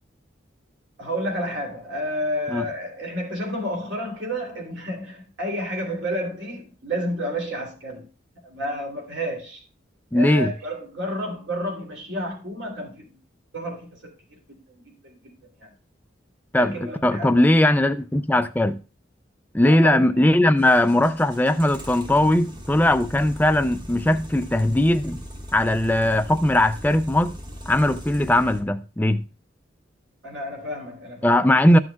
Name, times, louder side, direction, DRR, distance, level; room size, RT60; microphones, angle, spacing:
voice 1, 1.0-8.1 8.4-9.6 10.1-13.2 13.5-14.1 14.5-15.3 15.6-15.7 16.5-17.5 19.6-20.1 30.2-31.8, equal, 70° right, 3.1 m, -31 dB
voice 2, 10.1-10.5 16.5-18.8 19.5-25.2 25.5-27.4 27.7-29.2 31.2-31.8, left 1 dB, 10° left, 0.4 m, -19 dB
sound 1, 20.6-28.6, equal, 25° right, 1.0 m, -39 dB
13.0 x 6.2 x 2.3 m
head